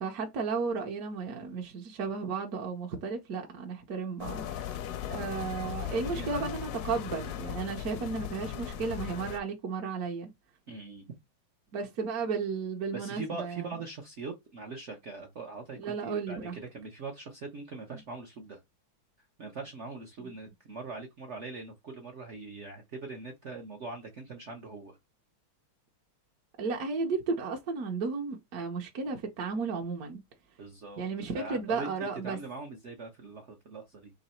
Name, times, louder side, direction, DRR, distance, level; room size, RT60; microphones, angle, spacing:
voice 1, 0.0-4.8 5.1-10.3 11.7-13.7 15.8-16.6 17.9-18.0 26.6-30.2 31.0-32.4, right 4 dB, 60° right, 1.0 m, -34 dB
sound 1, 4.2-9.4, left 10 dB, 75° left, 0.9 m, -37 dB
voice 2, 10.7-11.1 12.9-18.6 19.4-25.0 30.6-31.1 31.3-34.1, right 3 dB, 80° right, 0.6 m, -42 dB
3.9 x 3.0 x 4.3 m
omnidirectional pair, 2.3 m